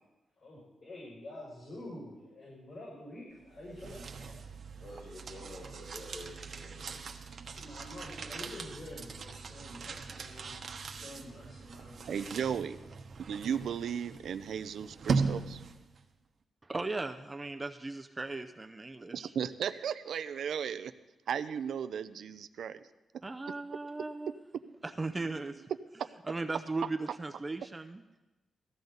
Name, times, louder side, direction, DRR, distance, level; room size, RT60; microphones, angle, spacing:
voice 1, 0.4-4.3 7.5-12.8, left 1 dB, 50° left, -7 dB, 6.3 m, -48 dB
sound 1, 3.4-16.0, right 4 dB, 50° right, 1.2 m, -39 dB
voice 2, 4.8-7.0, left 1 dB, 80° left, -8 dB, 6.9 m, -48 dB
voice 3, 12.1-12.8 13.2-15.6 19.1-20.9 21.3-22.8 26.0-26.1, right 8 dB, 75° right, 13 dB, 0.6 m, -35 dB
voice 4, 16.6-19.3 23.2-24.4 24.8-25.7 26.2-28.0, right 3 dB, 20° right, 7 dB, 0.6 m, -37 dB
18.0 x 14.5 x 4.0 m, 1.1 s
wide cardioid pair, 120°, 0 cm